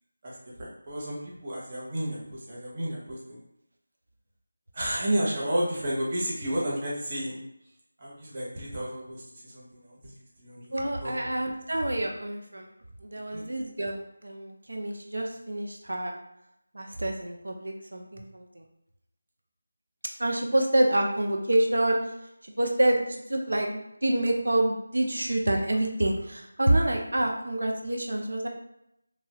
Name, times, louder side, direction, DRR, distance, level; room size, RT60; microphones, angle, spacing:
voice 1, 0.2-3.4 4.7-7.4 8.0-10.7 11.0-11.3 13.3-13.5, right 1 dB, 25° right, -5 dB, 0.7 m, -32 dB
voice 2, 10.7-12.7 13.0-16.2 16.7-18.6 20.2-22.0 22.4-28.5, right 1 dB, 85° right, 2 dB, 0.5 m, -27 dB
3.0 x 2.3 x 2.8 m, 0.82 s
figure-of-eight pair, 175°, 0 cm